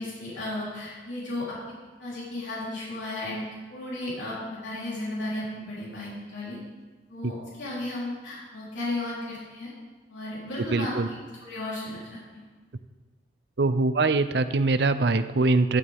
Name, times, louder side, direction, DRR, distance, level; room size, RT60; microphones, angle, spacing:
voice 1, 0.0-1.6 2.0-3.4 3.7-6.6 7.1-9.7 10.1-11.2 11.4-12.4, left 1 dB, 85° left, -7 dB, 3.5 m, -34 dB
voice 2, 10.7-11.1 13.6-15.8, right 3 dB, 60° right, 11 dB, 0.5 m, -23 dB
12.0 x 11.5 x 3.5 m, 1.3 s
head